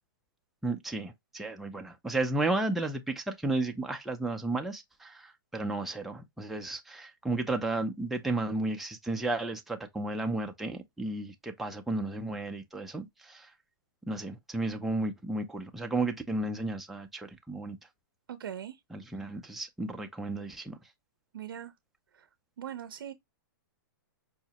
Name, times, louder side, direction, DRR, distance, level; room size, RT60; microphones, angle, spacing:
voice 1, 0.6-13.5 14.1-17.8 18.9-20.8, right 2 dB, ahead, 0.4 m, -33 dB
voice 2, 18.3-18.8 19.2-19.3 21.3-21.7 22.6-23.1, right 9 dB, 85° right, 0.5 m, -40 dB
4.7 x 2.1 x 2.7 m
hypercardioid pair, 135°, 11 cm